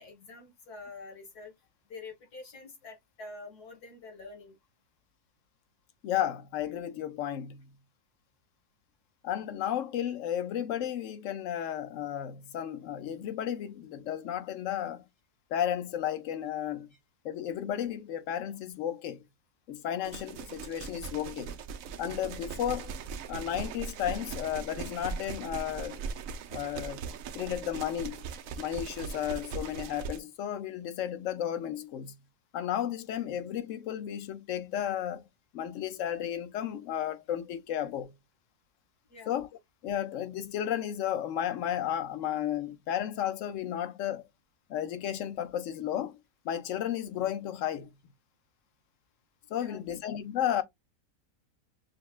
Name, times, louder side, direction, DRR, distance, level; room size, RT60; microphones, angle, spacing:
voice 1, 0.0-1.5 1.9-4.6 16.9-17.0 39.1-39.3 49.5-49.8, left 3 dB, 80° left, 2.2 m, -47 dB
voice 2, 6.0-7.7 9.2-15.0 15.5-16.9 17.2-19.2 19.7-21.6 22.0-22.9 23.3-26.0 26.5-28.2 28.6-32.2 32.5-35.2 35.5-38.1 39.3-39.5 39.8-44.2 44.7-46.2 46.4-47.9 49.5-50.6, left 10 dB, 60° left, 1.0 m, -33 dB
sound 1, 20.0-30.2, right 6 dB, 70° right, 0.9 m, -40 dB
6.4 x 2.2 x 2.4 m
omnidirectional pair, 1.6 m